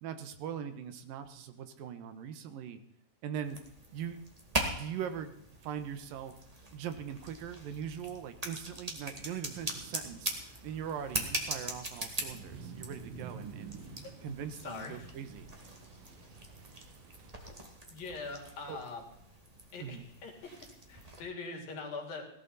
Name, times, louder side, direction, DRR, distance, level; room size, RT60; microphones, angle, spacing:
voice 1, 0.0-2.8 3.2-3.6 3.9-4.2 4.7-5.3 5.6-6.4 6.7-13.8 14.2-15.5 18.7-18.8 19.8-20.1, right 8 dB, 80° right, 10 dB, 2.8 m, -41 dB
sound 1, 3.4-21.2, right 1 dB, 20° right, 1.0 m, -42 dB
sound 2, 9.4-17.3, right 5 dB, 55° right, 2.2 m, -51 dB
voice 2, 14.6-15.1 17.9-19.0 19.7-20.3 20.9-22.2, left 4 dB, 80° left, 1 dB, 4.5 m, -42 dB
17.5 x 13.0 x 4.1 m, 0.78 s
omnidirectional pair, 4.0 m